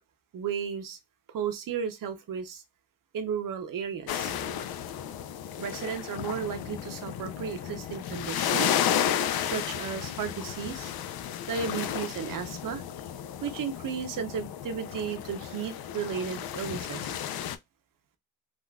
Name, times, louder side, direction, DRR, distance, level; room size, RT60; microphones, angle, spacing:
voice 1, 0.3-1.0 1.3-2.6 3.1-4.3 5.6-8.7 9.4-10.9 11.5-12.8 13.4-17.1, right 7 dB, 65° right, 0.7 m, -34 dB
sound 1, 4.1-17.6, left 9 dB, 90° left, 0.5 m, -33 dB
3.6 x 2.4 x 2.2 m
wide cardioid pair, 135°, 35 cm